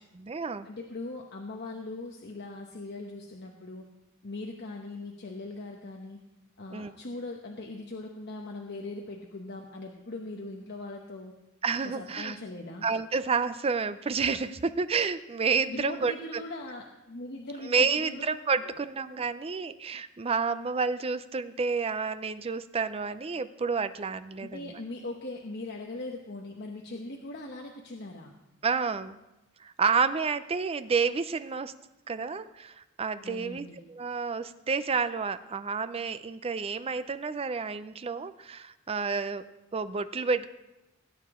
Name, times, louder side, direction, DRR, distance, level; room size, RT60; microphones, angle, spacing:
voice 1, 0.1-0.7 6.7-6.9 11.6-12.4 12.8-16.4 17.6-24.6 28.6-29.2 29.6-31.7 32.1-39.4 39.7-40.5, right 5 dB, 30° right, 13 dB, 0.4 m, -30 dB
voice 2, 0.6-3.8 4.2-6.2 6.6-11.3 11.8-12.8 15.7-18.2 18.6-18.7 24.4-28.3 33.2-33.9, left 2 dB, 50° left, 1 dB, 1.0 m, -40 dB
18.0 x 8.9 x 3.7 m, 0.98 s
head